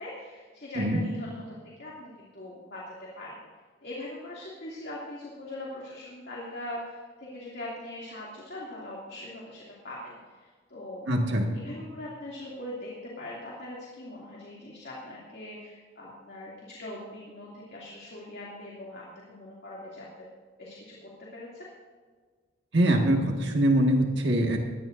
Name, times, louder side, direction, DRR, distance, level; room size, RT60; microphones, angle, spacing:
voice 1, 0.0-1.4 1.8-3.4 3.8-20.3 20.6-21.7, left 1 dB, 55° left, -5 dB, 2.7 m, -41 dB
voice 2, 11.1-11.5 22.7-24.6, right 1 dB, 60° right, 1 dB, 1.8 m, -23 dB
20.0 x 14.5 x 2.6 m, 1.5 s
head